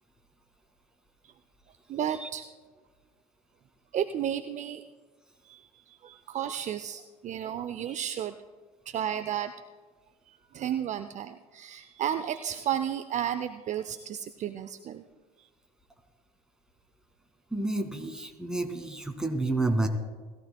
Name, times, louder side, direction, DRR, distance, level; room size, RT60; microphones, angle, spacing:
voice 1, 1.9-2.5 3.9-4.8 5.5-8.4 8.9-9.5 10.5-15.0, right 10 dB, 40° right, 10 dB, 0.6 m, -33 dB
voice 2, 17.5-19.9, right 2 dB, 5° right, 3 dB, 2.1 m, -29 dB
20.5 x 14.5 x 2.3 m, 1.4 s
hypercardioid pair, 75°, 20 cm